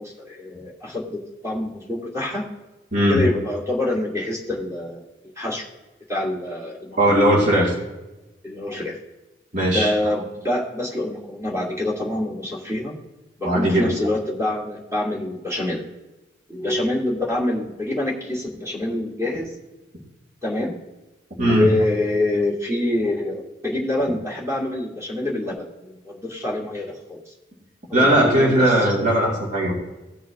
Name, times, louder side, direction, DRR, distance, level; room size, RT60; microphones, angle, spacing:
voice 1, 0.0-2.4 3.1-5.1 5.4-5.7 6.1-7.2 8.4-9.0 9.6-13.0 13.4-15.8 16.5-19.5 20.4-20.7 21.4-27.3 27.9-28.9, left 1 dB, 15° right, -4 dB, 2.3 m, -26 dB
voice 2, 2.9-3.2 7.0-7.7 9.5-9.9 13.4-13.9 21.4-21.7 27.9-29.7, right 1 dB, 45° right, -5 dB, 2.9 m, -18 dB
17.5 x 6.2 x 3.0 m, 1.1 s
head